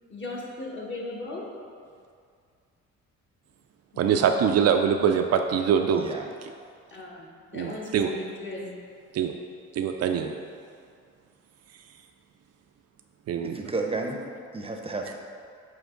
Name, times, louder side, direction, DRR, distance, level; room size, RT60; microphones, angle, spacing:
voice 1, 0.1-1.5 3.9-4.3 6.9-8.8, left 2 dB, 40° left, -3 dB, 1.4 m, -37 dB
voice 2, 4.0-6.1 6.4-6.5 7.5-8.1 9.1-9.3 9.7-10.4 13.3-13.7, right 7 dB, 55° right, 5 dB, 0.4 m, -24 dB
voice 3, 5.8-6.2 13.4-14.2 14.5-15.1, right 3 dB, 20° right, 2 dB, 0.7 m, -32 dB
8.8 x 3.0 x 3.8 m, 2.2 s
cardioid pair, 90°, 30 cm